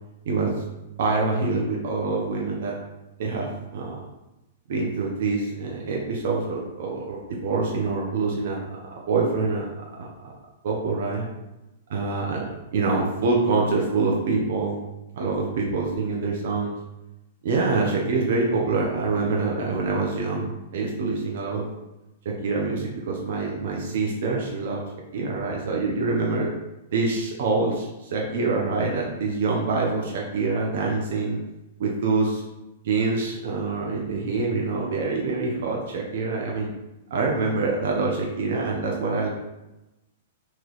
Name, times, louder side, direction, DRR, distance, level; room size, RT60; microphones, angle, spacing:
voice 1, 0.3-0.7 1.0-2.7 3.2-4.0 4.7-9.7 10.0-10.1 10.6-11.2 11.9-12.4 12.7-14.8 15.1-16.8 17.4-21.7 22.2-24.8 25.1-26.5 26.9-31.4 31.8-32.4 32.8-36.7 37.1-39.3, right 3 dB, 65° right, -2 dB, 0.7 m, -25 dB
3.1 x 2.9 x 4.0 m, 0.98 s
hypercardioid pair, 145°, 0 cm